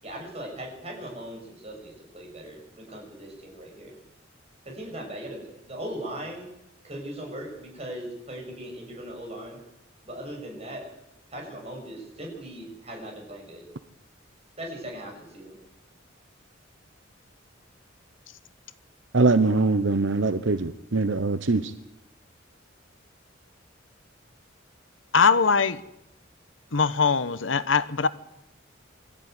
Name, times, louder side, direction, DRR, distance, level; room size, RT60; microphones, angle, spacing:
voice 1, 0.0-4.0 4.6-6.5 6.8-9.6 10.0-10.9 11.3-13.7 14.6-15.6, right 1 dB, 35° right, 0 dB, 7.3 m, -39 dB
voice 2, 19.1-21.7, right 3 dB, 70° right, 11 dB, 1.0 m, -22 dB
voice 3, 25.1-25.8 26.7-28.1, left 5 dB, 75° left, 14 dB, 1.0 m, -21 dB
24.0 x 13.5 x 9.6 m, 0.85 s
head